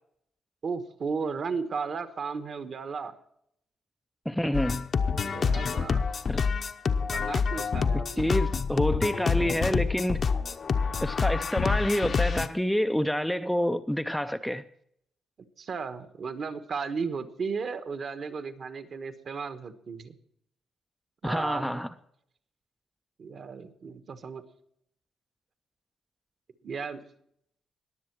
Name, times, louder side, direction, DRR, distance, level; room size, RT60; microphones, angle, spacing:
voice 1, 0.6-3.2 5.2-6.1 7.1-8.3 15.6-20.2 21.2-21.8 23.2-24.4 26.6-27.0, right 5 dB, 45° right, 1.2 m, -35 dB
voice 2, 4.3-4.9 6.3-6.4 8.2-10.2 11.0-14.6 21.2-21.9, equal, ahead, 0.5 m, -27 dB
sound 1, 4.5-12.5, left 5 dB, 45° left, 0.8 m, -27 dB
21.0 x 7.6 x 4.6 m
cardioid pair, 130°, 0 cm